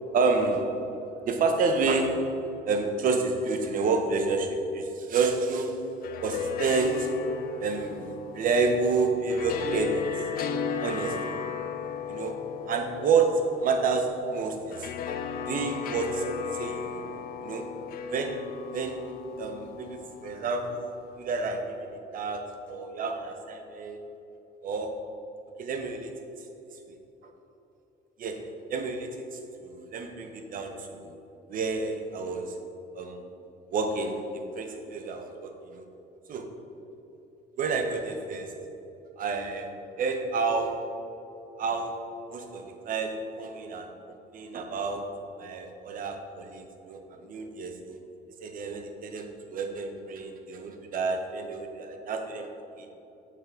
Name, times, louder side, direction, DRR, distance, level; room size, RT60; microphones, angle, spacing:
voice 1, 0.1-1.0 1.2-5.8 6.2-7.2 7.6-10.1 10.8-11.2 12.1-12.4 12.7-14.9 15.5-17.7 18.1-18.4 18.7-19.1 19.4-24.0 24.6-25.0 25.6-26.1 26.9-27.0 28.2-31.2 31.5-32.6 32.9-33.3 33.7-35.8 36.3-36.6 37.6-38.5 39.2-41.0 41.6-48.0 48.4-52.5 52.8-52.9, right 4 dB, 55° right, 5 dB, 0.9 m, -29 dB
sound 1, 5.9-21.0, left 7 dB, 60° left, 0.5 m, -36 dB
7.2 x 5.8 x 3.7 m, 3.0 s
cardioid pair, 110°, 17 cm